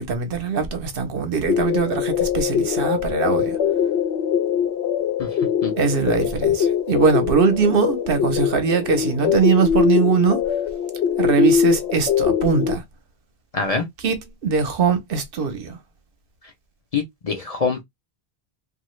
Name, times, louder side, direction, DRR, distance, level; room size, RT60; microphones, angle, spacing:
voice 1, 0.0-3.6 5.8-10.4 11.2-12.8 14.0-15.8, right 6 dB, 65° right, 0.9 m, -21 dB
sound 1, 1.5-12.7, left 8 dB, 90° left, 0.9 m, -22 dB
voice 2, 13.5-13.8 16.9-17.8, left 4 dB, 45° left, 0.6 m, -24 dB
2.8 x 2.4 x 3.1 m
omnidirectional pair, 1.0 m